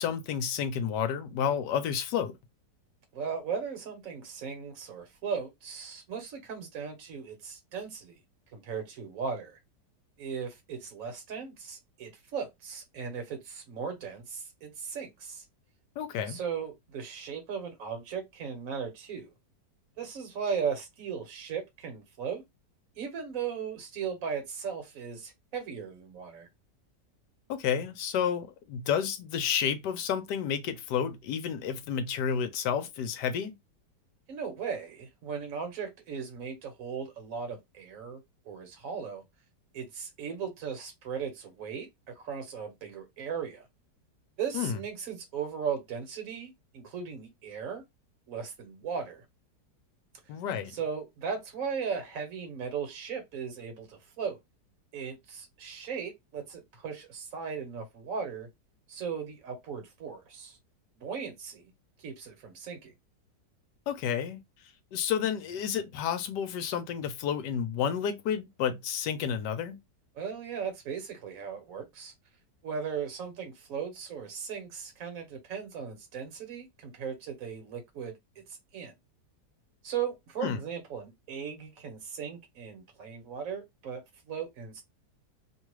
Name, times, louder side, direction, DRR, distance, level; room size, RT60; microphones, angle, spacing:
voice 1, 0.0-2.3 16.0-16.4 27.5-33.5 44.5-44.8 50.3-50.7 63.9-64.4 64.9-69.8 80.4-80.6, left 8 dB, 75° left, 1.1 m, -30 dB
voice 2, 3.1-8.2 8.5-9.6 10.2-15.4 16.3-19.3 20.0-22.4 23.0-26.5 34.3-39.2 39.7-43.7 44.4-47.8 48.3-49.2 50.7-54.4 54.9-58.5 58.9-60.6 61.0-61.7 62.0-62.9 70.1-72.1 72.6-78.4 78.7-78.9 79.8-84.8, right 6 dB, 55° right, 1.2 m, -37 dB
2.9 x 2.3 x 3.1 m
omnidirectional pair, 1.9 m